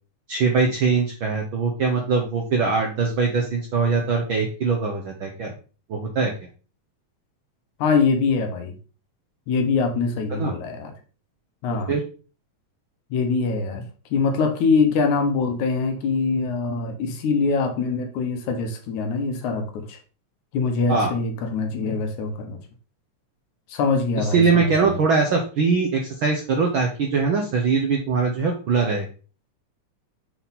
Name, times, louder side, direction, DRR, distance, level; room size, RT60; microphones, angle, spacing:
voice 1, 0.3-5.5 5.9-6.3 10.3-10.5 11.7-12.0 20.9-21.1 24.2-29.1, right 4 dB, 75° right, 2 dB, 1.1 m, -22 dB
voice 2, 7.8-8.7 9.5-10.9 11.6-11.9 13.1-13.8 14.1-20.0 20.5-22.6 23.7-25.0, left 4 dB, 75° left, 5 dB, 2.4 m, -23 dB
6.9 x 3.8 x 4.1 m, 0.36 s
omnidirectional pair, 3.5 m